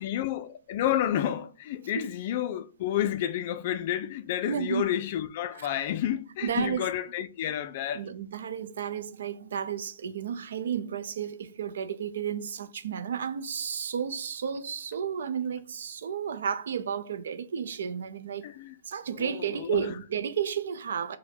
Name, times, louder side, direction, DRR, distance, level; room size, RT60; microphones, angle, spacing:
voice 1, 0.0-8.1 18.4-18.7 19.2-19.9, left 11 dB, 45° left, 0.3 m, -30 dB
voice 2, 4.5-4.9 5.5-5.7 6.4-6.8 7.9-18.5 18.9-21.2, right 8 dB, 75° right, 0.5 m, -32 dB
4.2 x 2.1 x 4.3 m
hypercardioid pair, 155°, 0 cm